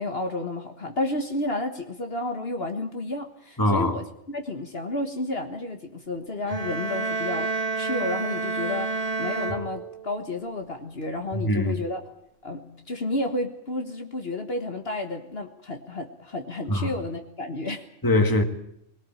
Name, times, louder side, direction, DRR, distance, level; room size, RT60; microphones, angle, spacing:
voice 1, 0.0-12.0 12.4-17.8, left 2 dB, 55° left, 1.7 m, -31 dB
voice 2, 3.6-3.9 11.3-11.8 16.7-16.9 17.7-17.8 18.0-18.4, left 1 dB, 15° left, 1.8 m, -22 dB
sound 1, 6.4-10.3, right 3 dB, 30° right, 1.3 m, -29 dB
21.0 x 18.0 x 9.0 m
omnidirectional pair, 1.3 m